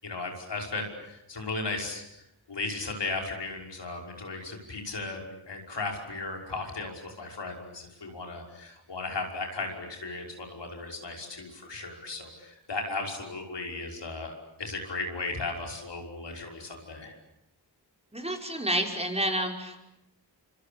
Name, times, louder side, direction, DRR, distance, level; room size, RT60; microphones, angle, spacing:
voice 1, 0.0-2.0 2.5-17.2, left 3 dB, 75° left, 2 dB, 5.7 m, -36 dB
voice 2, 18.1-19.8, right 1 dB, 15° right, 2 dB, 5.7 m, -29 dB
27.0 x 26.0 x 8.6 m, 0.85 s
cardioid pair, 55°, 42 cm